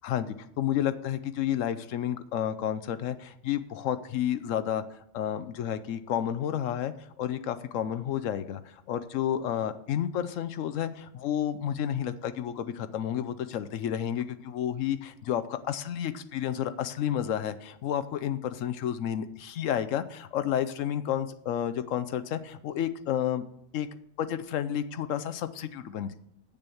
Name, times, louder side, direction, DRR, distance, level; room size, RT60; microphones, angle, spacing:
voice 1, 0.0-23.4 23.7-23.9 24.2-26.1, left 10 dB, 75° left, 11 dB, 0.9 m, -31 dB
8.2 x 6.9 x 6.9 m, 0.77 s
omnidirectional pair, 1.4 m